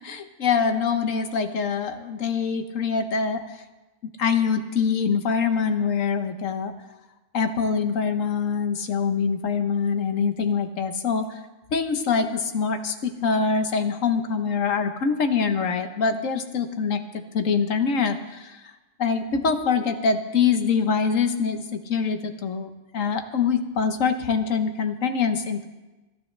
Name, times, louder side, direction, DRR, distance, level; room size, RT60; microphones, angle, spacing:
voice 1, 0.0-3.6 4.2-6.7 7.3-11.4 11.7-17.0 17.3-18.6 19.0-25.7, left 5 dB, 80° left, 8 dB, 1.4 m, -24 dB
28.0 x 10.5 x 3.3 m, 1.1 s
omnidirectional pair, 1.3 m